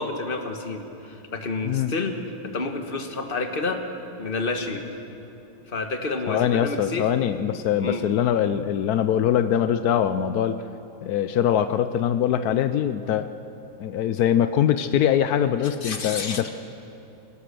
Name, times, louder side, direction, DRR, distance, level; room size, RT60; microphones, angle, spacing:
voice 1, 0.0-2.2 2.4-3.8 4.2-4.8 5.7-7.1 7.8-8.0 15.8-16.5, left 3 dB, 30° left, 5 dB, 1.4 m, -29 dB
voice 2, 6.3-10.6 11.0-13.3 13.8-16.5, left 9 dB, 85° left, 10 dB, 0.8 m, -23 dB
26.0 x 17.5 x 6.8 m, 2.8 s
omnidirectional pair, 2.4 m